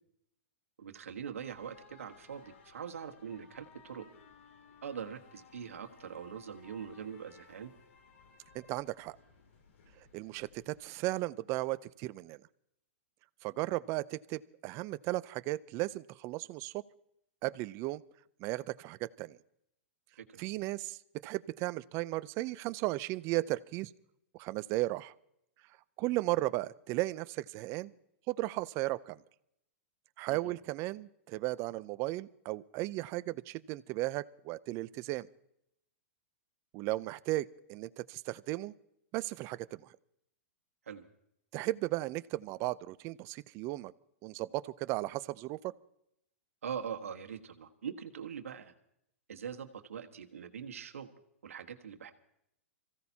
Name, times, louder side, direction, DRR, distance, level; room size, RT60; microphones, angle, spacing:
voice 1, 0.8-4.1 4.8-7.7 20.2-20.5 30.3-30.5 40.9-41.1 46.6-48.7 49.3-51.1 51.4-52.1, right 7 dB, 85° right, 5 dB, 1.4 m, -43 dB
sound 1, 1.4-10.8, left 4 dB, 70° left, 2.7 m, -59 dB
voice 2, 8.5-9.2 10.1-12.4 13.4-16.8 17.4-18.0 18.4-19.4 20.4-21.0 21.2-23.9 24.4-25.1 26.0-27.9 28.3-29.2 30.2-35.3 36.7-38.7 39.1-39.8 41.5-43.9 44.2-45.7, right 18 dB, 40° right, 16 dB, 0.6 m, -35 dB
26.0 x 15.5 x 2.8 m, 0.76 s
hypercardioid pair, 125°, 7 cm